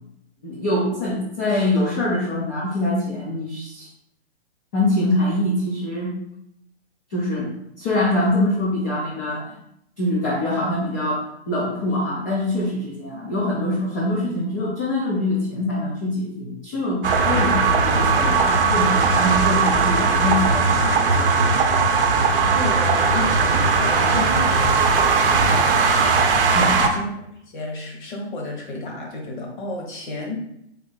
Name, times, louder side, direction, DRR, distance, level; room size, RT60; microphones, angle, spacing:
voice 1, 0.4-3.9 4.7-6.1 7.1-9.5 10.0-21.5 26.5-26.9, left 1 dB, 15° left, -6 dB, 0.3 m, -24 dB
sound 1, 17.0-26.9, right 4 dB, 55° right, 0.7 m, -18 dB
voice 2, 22.5-27.1 27.4-30.4, left 2 dB, 45° left, 0 dB, 1.2 m, -32 dB
3.5 x 2.6 x 3.7 m, 0.76 s
hypercardioid pair, 145°, 33 cm